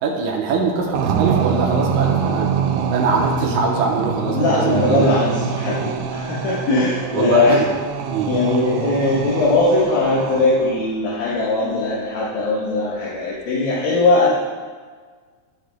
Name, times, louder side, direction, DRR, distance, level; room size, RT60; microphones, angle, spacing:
voice 1, 0.0-2.5 2.9-5.3 7.1-7.7 8.1-8.3, right 4 dB, 70° right, -1 dB, 2.1 m, -22 dB
sound 1, 0.9-10.8, right 7 dB, 90° right, 2.5 m, -24 dB
voice 2, 4.2-7.6 8.3-14.4, left 2 dB, 75° left, -7 dB, 2.9 m, -20 dB
14.0 x 4.9 x 2.3 m, 1.5 s
omnidirectional pair, 4.2 m